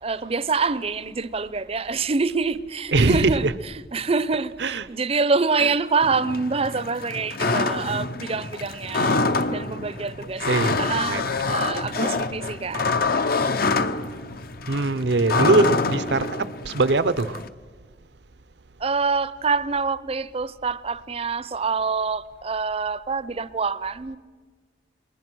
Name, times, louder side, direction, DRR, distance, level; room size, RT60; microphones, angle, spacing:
voice 1, 0.0-3.5 3.9-10.5 10.8-13.4 18.8-24.2, right 4 dB, 35° right, 0.6 m, -26 dB
voice 2, 2.9-3.5 4.6-4.9 5.6-5.7 10.2-11.8 14.7-17.4, right 3 dB, 70° right, 0.7 m, -22 dB
sound 1, 6.0-17.5, left 3 dB, 55° left, 0.8 m, -26 dB
28.5 x 21.0 x 6.2 m
head